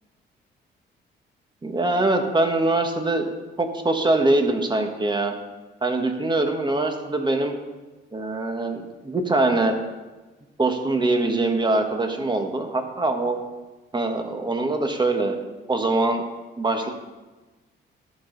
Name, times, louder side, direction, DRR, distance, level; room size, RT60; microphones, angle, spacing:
voice 1, 1.6-3.3 3.6-5.3 5.8-7.6 8.1-9.8 10.6-13.4 13.9-15.4 15.7-16.2 16.6-16.9, right 2 dB, 20° right, 5 dB, 1.3 m, -23 dB
12.5 x 6.3 x 3.9 m, 1.2 s
cardioid pair, 90°, 20 cm